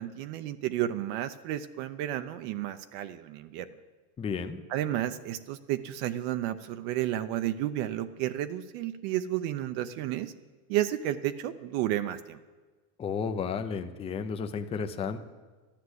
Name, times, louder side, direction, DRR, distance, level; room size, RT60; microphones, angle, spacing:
voice 1, 0.0-3.7 4.7-10.3 10.7-12.4, right 12 dB, 65° right, 10 dB, 0.8 m, -32 dB
voice 2, 4.2-4.6 13.0-15.2, left 6 dB, 15° left, 7 dB, 0.5 m, -32 dB
13.0 x 10.5 x 8.0 m, 1.3 s
cardioid pair, 160°, 43 cm